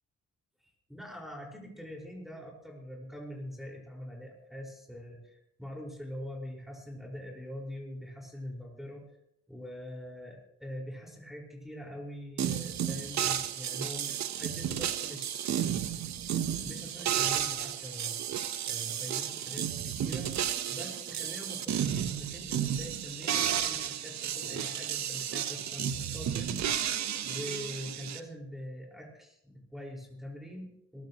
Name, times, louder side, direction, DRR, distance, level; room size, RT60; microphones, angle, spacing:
voice 1, 0.6-5.3 5.6-9.0 9.5-15.5 16.6-18.2 18.6-20.3 20.7-26.7 27.2-31.0, equal, ahead, -2 dB, 5.4 m, -43 dB
sound 1, 12.4-28.2, right 10 dB, 65° right, 1.2 m, -32 dB
21.5 x 15.0 x 3.2 m, 0.77 s
cardioid pair, 90°, 30 cm